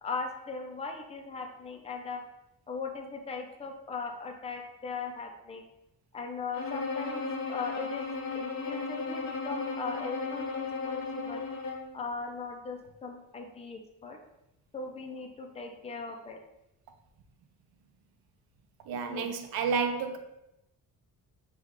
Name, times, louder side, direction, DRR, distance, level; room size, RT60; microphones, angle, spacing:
voice 1, 0.0-2.2 2.7-5.6 6.1-8.1 8.3-11.4 11.9-14.2 14.7-16.4 19.1-19.3, left 4 dB, 20° left, 2 dB, 0.4 m, -39 dB
Bowed string instrument, 6.5-12.0, left 4 dB, 50° left, 0.8 m, -35 dB
voice 2, 18.9-20.2, right 5 dB, 85° right, 6 dB, 0.6 m, -30 dB
5.6 x 2.3 x 3.0 m, 0.87 s
cardioid pair, 170°, 35 cm